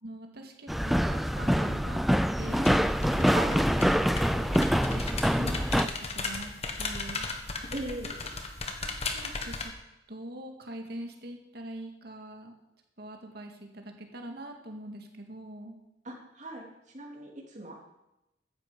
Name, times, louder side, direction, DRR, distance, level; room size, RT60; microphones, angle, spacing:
voice 1, 0.0-2.8 3.1-6.5 6.8-7.3 8.0-8.1 8.6-9.7 10.1-12.6 13.0-15.8, right 1 dB, 60° right, 3 dB, 2.0 m, -43 dB
sound 1, 0.7-5.9, equal, ahead, 0.4 m, -25 dB
sound 2, 2.5-9.7, left 3 dB, 35° left, 1.4 m, -37 dB
voice 2, 3.3-3.6 7.7-8.2 16.0-16.7 16.9-17.7, right 2 dB, 40° right, 0 dB, 3.1 m, -38 dB
14.0 x 10.0 x 5.4 m, 0.92 s
head